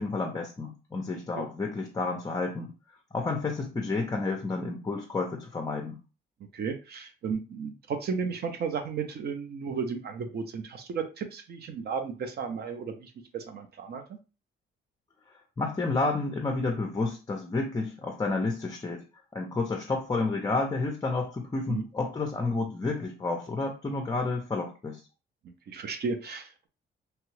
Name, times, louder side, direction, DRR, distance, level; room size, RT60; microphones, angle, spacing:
voice 1, 0.0-2.7 3.1-6.0 15.6-19.0 19.3-25.0, left 3 dB, 20° left, 2 dB, 0.5 m, -30 dB
voice 2, 6.5-14.0 21.7-21.8 25.7-26.7, right 5 dB, 55° right, 6 dB, 0.5 m, -34 dB
2.9 x 2.3 x 3.1 m, 0.32 s
cardioid pair, 120°, 20 cm